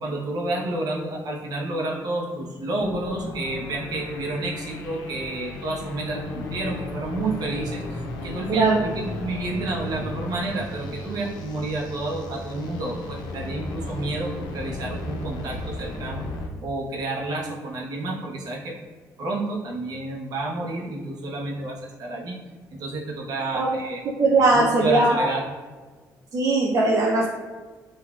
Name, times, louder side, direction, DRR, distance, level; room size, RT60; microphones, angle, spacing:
voice 1, 0.0-16.2 16.6-18.8 19.2-22.4 22.7-24.0 24.4-25.4, right 2 dB, 70° right, -1 dB, 0.9 m, -30 dB
sound 1, 2.8-16.5, left 2 dB, 75° left, 0.5 m, -35 dB
voice 2, 8.5-8.8 23.5-23.8 24.2-25.3 26.3-27.3, right 2 dB, 50° right, -2 dB, 0.5 m, -20 dB
5.7 x 2.6 x 2.4 m, 1.4 s
cardioid pair, 80°, 7 cm